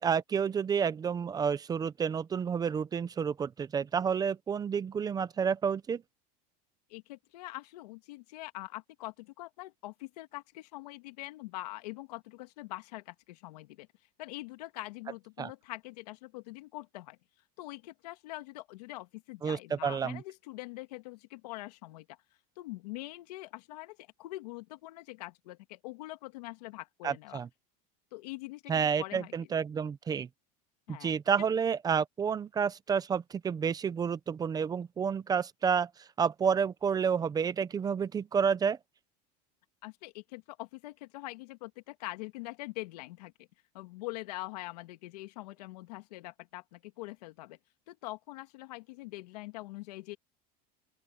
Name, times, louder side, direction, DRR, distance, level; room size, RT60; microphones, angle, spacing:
voice 1, 0.0-6.0 15.4-15.5 19.4-20.2 27.0-27.5 28.7-30.3 30.9-38.8, right 6 dB, 20° right, 0.7 m, -30 dB
voice 2, 6.9-13.9 14.2-17.2 17.6-22.2 22.6-27.4 28.1-29.3 30.9-31.1 39.8-43.5 43.7-47.6 47.9-50.2, left 20 dB, 90° left, 2.0 m, -44 dB
open air
supercardioid pair, 150°, 20 cm